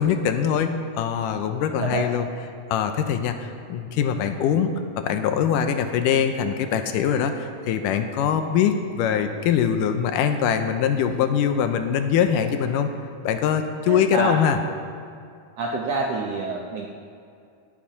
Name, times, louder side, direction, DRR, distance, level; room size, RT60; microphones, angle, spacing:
voice 1, 0.0-2.3 2.7-12.9 13.2-14.6, left 8 dB, 80° left, 7 dB, 2.2 m, -23 dB
voice 2, 13.9-14.4 15.6-16.9, right 3 dB, 75° right, 0 dB, 1.5 m, -27 dB
18.0 x 7.6 x 5.6 m, 2.4 s
omnidirectional pair, 3.9 m